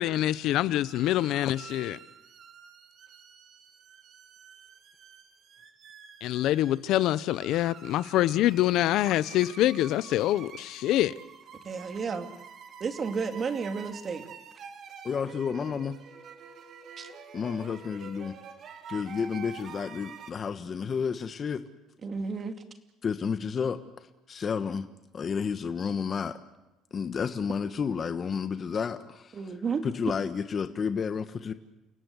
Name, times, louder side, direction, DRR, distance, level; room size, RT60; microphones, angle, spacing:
voice 1, 0.0-2.0 6.2-11.1, left 14 dB, 70° left, 0.8 m, -25 dB
sound 1, 0.7-20.3, right 7 dB, 55° right, 2.7 m, -48 dB
voice 2, 11.6-12.3 12.8-14.3 17.0-17.1 22.0-22.5 29.3-29.9, right 5 dB, 40° right, 2.6 m, -32 dB
voice 3, 15.0-16.0 17.3-18.3 18.9-21.6 23.0-23.8 24.3-24.9 25.1-26.4 26.9-29.4 29.8-31.5, left 6 dB, 40° left, 1.4 m, -31 dB
29.5 x 17.0 x 8.2 m
cardioid pair, 100°, 0 cm